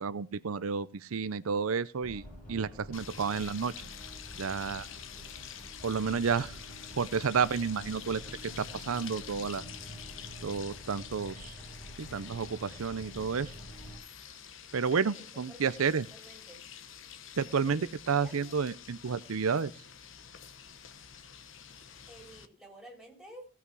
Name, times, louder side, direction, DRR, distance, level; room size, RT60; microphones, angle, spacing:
voice 1, 0.0-3.7 4.4-4.9 5.8-6.6 7.0-8.2 8.6-9.6 10.4-11.5 12.0-13.5 14.7-16.0 17.4-19.7, right 5 dB, 85° right, 15 dB, 0.6 m, -31 dB
sound 1, 2.0-14.0, equal, 40° left, 7.2 m, -48 dB
sound 2, 2.9-22.5, left 8 dB, 65° left, 1.0 m, -48 dB
voice 2, 14.9-16.6 17.6-17.9 18.1-18.6 22.1-23.5, right 1 dB, ahead, -1 dB, 3.7 m, -52 dB
17.0 x 5.8 x 6.1 m, 0.36 s
head